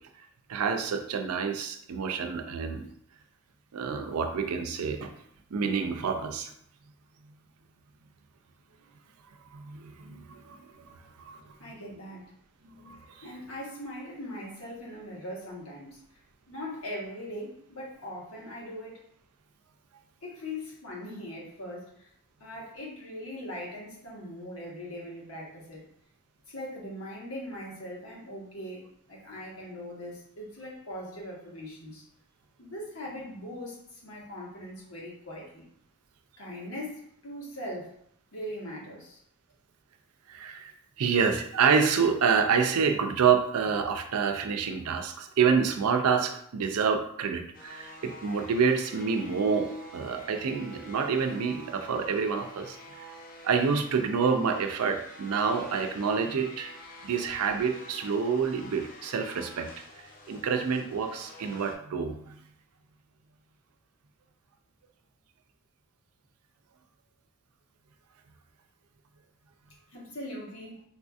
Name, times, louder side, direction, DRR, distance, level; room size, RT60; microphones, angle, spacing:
voice 1, 0.5-2.9 3.7-5.1 5.5-6.5 9.5-11.0 11.2-11.6 12.6-13.3 40.3-40.7 41.0-53.1 53.4-56.7 57.0-59.7 60.3-62.4, right 6 dB, 80° right, 6 dB, 0.4 m, -28 dB
voice 2, 11.6-12.2 13.2-19.0 20.2-22.1 22.4-25.8 26.5-32.0 32.6-35.6 36.4-38.0 38.3-39.2 69.9-70.8, left 1 dB, 70° left, -4 dB, 1.2 m, -40 dB
sound 1, 47.5-61.8, left 1 dB, 40° left, 0.5 m, -48 dB
4.0 x 2.6 x 2.3 m, 0.69 s
head